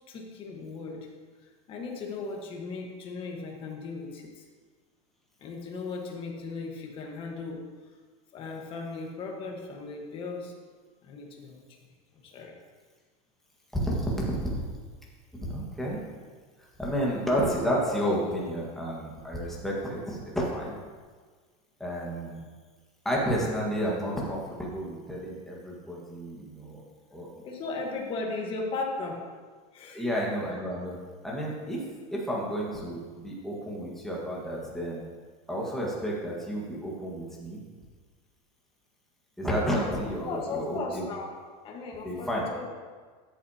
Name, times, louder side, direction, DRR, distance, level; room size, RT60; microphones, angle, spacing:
voice 1, 0.1-1.1 1.4-4.4 5.4-7.6 8.3-10.5 11.0-11.6 12.1-12.6 27.4-29.2 29.7-30.0 40.0-42.7, left 3 dB, 30° left, 1 dB, 1.4 m, -37 dB
voice 2, 13.7-14.6 15.5-16.0 16.8-20.7 21.8-22.4 23.0-26.8 27.1-27.3 29.9-31.0 31.2-31.8 32.1-35.0 35.5-37.6 39.4-41.1 42.0-42.4, equal, ahead, -5 dB, 1.6 m, -31 dB
13.0 x 8.1 x 2.9 m, 1.5 s
supercardioid pair, 175°, 19 cm